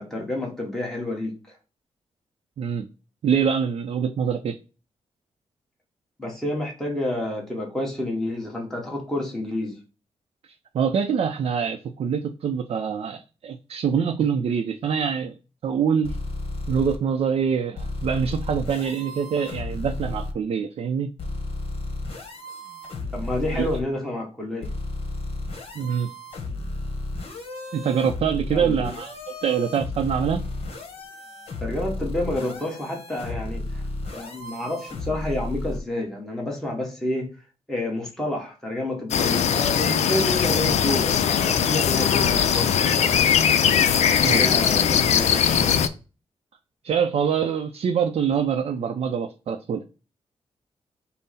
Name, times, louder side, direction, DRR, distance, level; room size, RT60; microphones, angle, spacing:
voice 1, 0.0-1.6 6.2-9.8 23.1-24.7 28.5-28.9 31.6-33.9 34.1-37.3 37.7-43.3 44.3-45.7, left 1 dB, 5° left, 1.1 m, -29 dB
voice 2, 2.6-2.9 3.2-4.6 10.4-15.4 15.6-16.2 16.7-21.1 23.5-23.6 25.7-26.1 27.7-29.1 29.4-30.4 44.1-44.4 46.8-49.8, right 7 dB, 65° right, 0.4 m, -25 dB
sound 1, 16.0-17.0 17.8-20.3 21.2-23.8 24.6-35.8, left 2 dB, 55° left, 1.1 m, -33 dB
sound 2, 39.1-45.9, left 8 dB, 85° left, 0.4 m, -20 dB
5.4 x 2.0 x 4.0 m
wide cardioid pair, 115°, 11 cm